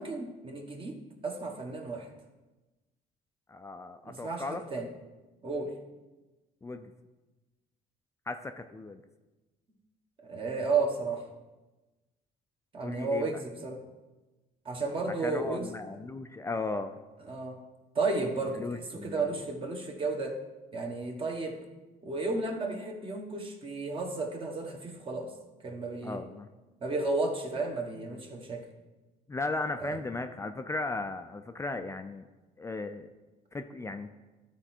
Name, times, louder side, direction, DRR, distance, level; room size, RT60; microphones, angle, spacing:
voice 1, 0.0-2.1 4.0-4.9 5.4-5.7 10.2-11.2 12.7-13.8 14.6-15.7 17.3-17.6 17.9-20.4 20.7-21.6 22.0-25.3 25.6-26.2 26.8-28.7 29.8-30.0, right 3 dB, 30° right, 1 dB, 1.3 m, -33 dB
voice 2, 3.5-4.6 6.6-6.9 8.3-9.0 12.8-13.3 15.2-17.0 18.5-19.3 26.0-26.5 29.3-32.3 32.6-33.1 33.5-34.2, left 3 dB, 15° left, 7 dB, 0.4 m, -36 dB
12.0 x 4.5 x 4.4 m, 1.1 s
cardioid pair, 110°, 17 cm